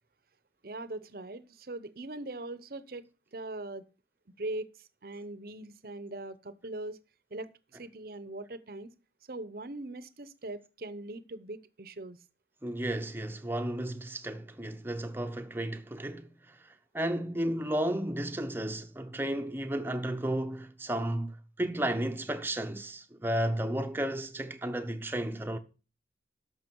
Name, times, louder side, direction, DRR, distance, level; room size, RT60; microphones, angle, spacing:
voice 1, 0.6-3.0 3.3-3.8 4.4-7.0 7.3-8.9 9.3-12.2, right 2 dB, 55° right, 0.8 m, -41 dB
voice 2, 12.6-25.6, right 1 dB, 10° right, 0.8 m, -33 dB
13.0 x 6.1 x 4.6 m
head